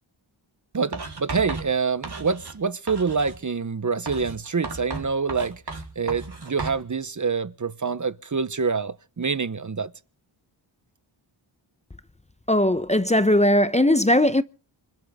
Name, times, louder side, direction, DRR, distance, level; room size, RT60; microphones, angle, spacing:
voice 1, 0.7-5.6 6.0-9.9, right 5 dB, 40° right, 0.9 m, -26 dB
Writing, 0.9-2.6 2.9-3.4 4.1-6.8, right 3 dB, 55° right, 3.7 m, -35 dB
voice 2, 12.5-14.4, left 1 dB, 15° left, 0.7 m, -19 dB
26.5 x 12.0 x 3.6 m
wide cardioid pair, 65°, 48 cm